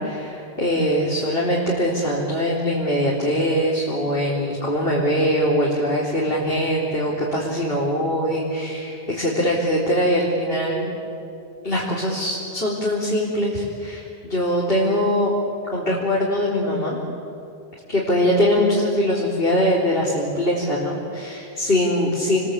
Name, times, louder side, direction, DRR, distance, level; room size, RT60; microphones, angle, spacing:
voice 1, 0.0-10.9 11.6-15.3 15.7-17.0 17.9-22.4, equal, 60° left, -5 dB, 4.3 m, -22 dB
30.0 x 22.0 x 8.5 m, 2.6 s
omnidirectional pair, 1.1 m